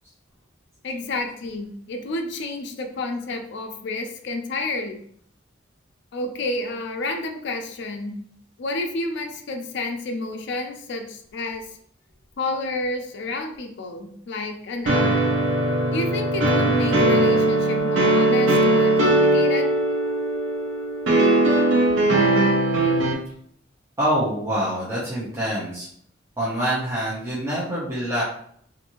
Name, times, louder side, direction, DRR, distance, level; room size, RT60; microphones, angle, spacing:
voice 1, 0.8-5.0 6.1-8.2 8.6-11.6 12.4-15.3 15.9-19.7, left 2 dB, 65° left, 4 dB, 0.4 m, -30 dB
sound 1, 14.9-23.1, right 1 dB, 80° right, 0.6 m, -19 dB
voice 2, 24.0-25.9 26.4-28.2, equal, 15° right, -9 dB, 0.7 m, -25 dB
2.6 x 2.5 x 2.9 m, 0.63 s
head